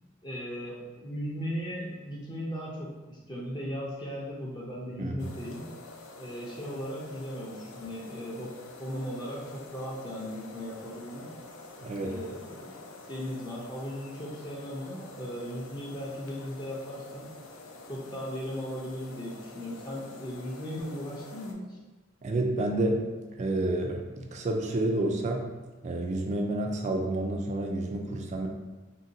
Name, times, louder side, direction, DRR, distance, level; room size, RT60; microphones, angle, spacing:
voice 1, 0.2-5.7 6.2-8.5 8.8-11.3 12.0-12.7 13.1-17.3 17.9-21.8, equal, 20° left, -6 dB, 0.5 m, -37 dB
sound 1, 5.2-21.5, left 2 dB, 75° left, 0.5 m, -48 dB
voice 2, 11.8-12.1 22.2-23.0 23.4-25.5 25.8-28.5, right 2 dB, 35° right, 2 dB, 0.3 m, -29 dB
3.8 x 2.2 x 2.6 m, 1.2 s
head